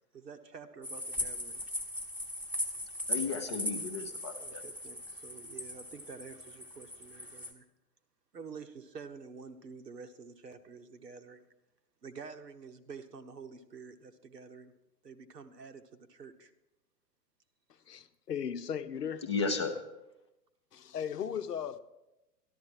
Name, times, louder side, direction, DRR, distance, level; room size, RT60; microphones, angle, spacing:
voice 1, 0.1-1.6 4.3-7.6 8.3-11.4 12.0-14.7 15.0-16.5, right 5 dB, 75° right, 1.2 m, -48 dB
sound 1, 0.8-7.5, left 1 dB, 5° right, 0.9 m, -39 dB
voice 2, 3.1-4.6 19.2-19.8, left 4 dB, 20° left, 0.4 m, -34 dB
voice 3, 17.9-19.3 20.7-21.8, left 8 dB, 75° left, 0.8 m, -37 dB
13.0 x 11.5 x 4.6 m
figure-of-eight pair, 120°, 49 cm